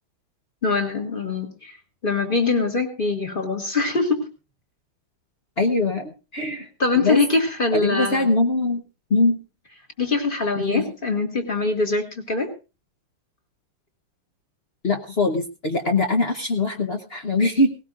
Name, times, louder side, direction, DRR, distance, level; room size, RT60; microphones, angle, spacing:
voice 1, 0.6-1.8 2.0-4.3 6.8-8.3 10.0-12.5, left 3 dB, 25° left, 3 dB, 2.1 m, -23 dB
voice 2, 5.6-6.7 7.0-7.2 7.7-8.8 9.1-9.4 10.6-10.8 14.8-17.7, left 2 dB, 40° left, 5 dB, 0.9 m, -22 dB
18.0 x 18.0 x 2.5 m, 0.30 s
omnidirectional pair, 2.2 m